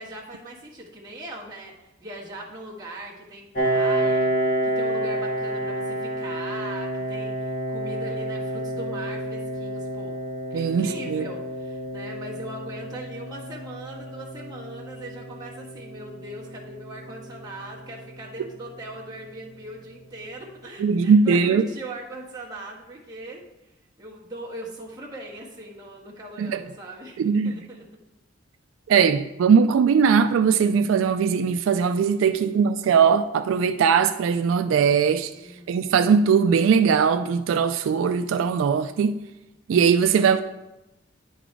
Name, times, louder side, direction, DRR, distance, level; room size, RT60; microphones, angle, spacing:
voice 1, 0.0-10.2 10.5-23.7 24.0-27.8 32.0-32.6 35.3-35.8, right 1 dB, 20° right, -4 dB, 1.4 m, -40 dB
Piano, 3.5-18.9, right 1 dB, 45° left, 1.2 m, -30 dB
voice 2, 10.5-11.3 20.8-21.7 26.4-26.6 27.2-27.6 28.9-35.3 35.7-39.2 39.7-40.4, right 6 dB, 80° right, 10 dB, 0.3 m, -20 dB
10.0 x 4.0 x 4.7 m, 0.96 s
head